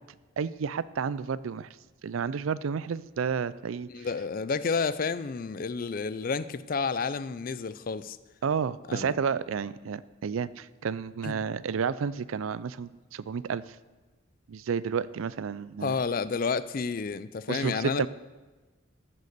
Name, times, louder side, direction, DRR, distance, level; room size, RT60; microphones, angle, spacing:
voice 1, 0.4-1.7 2.0-4.1 8.4-13.8 14.5-16.0 17.5-18.1, right 6 dB, 75° right, 18 dB, 0.4 m, -31 dB
voice 2, 3.9-8.2 8.9-9.1 11.2-11.4 15.8-18.1, left 5 dB, 40° left, 15 dB, 0.4 m, -30 dB
14.0 x 6.7 x 6.7 m, 1.2 s
head